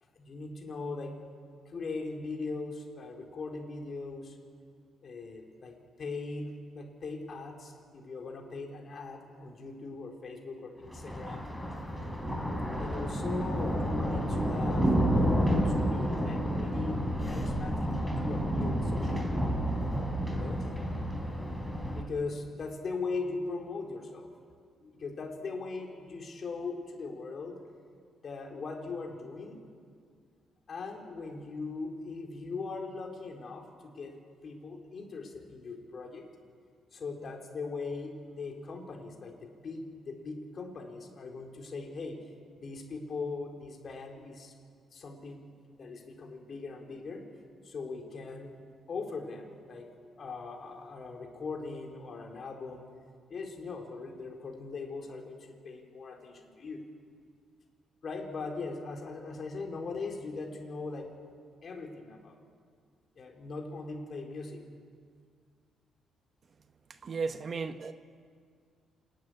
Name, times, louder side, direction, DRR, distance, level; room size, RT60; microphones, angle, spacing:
voice 1, 0.1-1.1 1.7-4.4 5.0-11.5 12.8-17.9 18.2-19.6 20.3-20.7 21.8-24.3 24.8-27.6 28.2-29.6 30.7-36.3 36.9-42.2 42.6-44.5 44.9-45.5 45.8-47.3 47.6-48.6 48.9-52.9 53.3-56.8 58.0-61.1 61.6-62.4 63.2-64.6, left 3 dB, 50° left, 1 dB, 4.2 m, -40 dB
Thunder, 10.9-22.0, equal, ahead, 3.7 m, -30 dB
voice 2, 67.0-67.9, right 4 dB, 45° right, 9 dB, 1.0 m, -34 dB
27.0 x 12.5 x 9.9 m, 2.1 s
cardioid pair, 90°, 0 cm